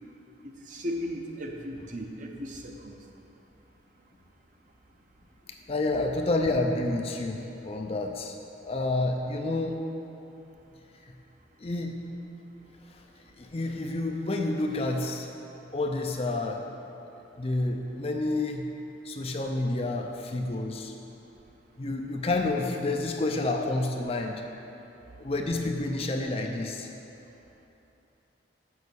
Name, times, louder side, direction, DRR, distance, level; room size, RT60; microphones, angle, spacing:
voice 1, 0.4-2.9, equal, 40° right, 2 dB, 0.8 m, -36 dB
voice 2, 5.7-9.8 11.0-11.1 11.6-11.9 12.9-13.0 13.4-15.3 15.7-16.7 17.4-18.7 19.0-20.9 21.8-24.4 25.2-26.9, left 2 dB, 30° left, 3 dB, 0.5 m, -29 dB
7.1 x 6.4 x 6.8 m, 3.0 s
head